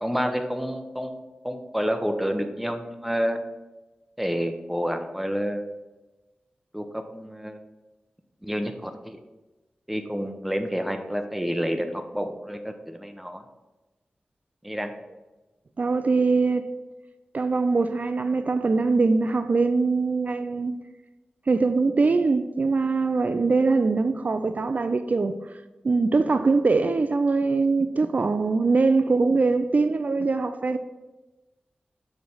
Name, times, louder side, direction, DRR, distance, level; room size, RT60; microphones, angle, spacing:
voice 1, 0.0-3.4 4.2-5.6 6.7-7.6 8.4-9.2 9.9-13.4 14.6-14.9, equal, ahead, 0.7 m, -29 dB
voice 2, 15.8-16.6 17.3-20.7 21.5-25.4 25.8-30.8, right 3 dB, 50° right, 0.3 m, -22 dB
6.8 x 3.3 x 5.5 m
wide cardioid pair, 65°, 3 cm